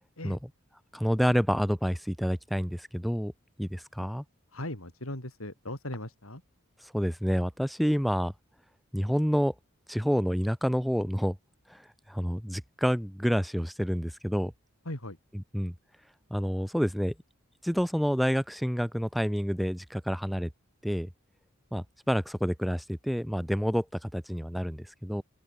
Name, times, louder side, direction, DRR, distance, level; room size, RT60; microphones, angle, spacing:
voice 1, 0.9-3.3 3.6-4.2 6.9-8.3 8.9-9.5 9.9-11.3 11.7-11.8 12.1-14.5 15.5-15.7 16.3-17.1 17.6-20.5 20.8-21.1 21.7-25.2, equal, ahead, 4.8 m, -28 dB
voice 2, 4.5-6.4 14.8-15.2, left 1 dB, 75° left, 6.7 m, -38 dB
open air
head